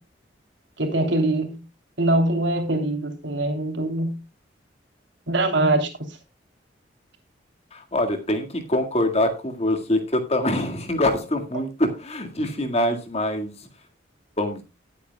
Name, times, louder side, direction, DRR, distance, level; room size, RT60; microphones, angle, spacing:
voice 1, 0.8-1.6 2.0-4.2 5.3-5.9, right 2 dB, 75° right, 3.1 m, -23 dB
voice 2, 7.7-13.7 14.4-14.6, left 1 dB, 35° left, 1.9 m, -24 dB
18.5 x 8.2 x 2.3 m
head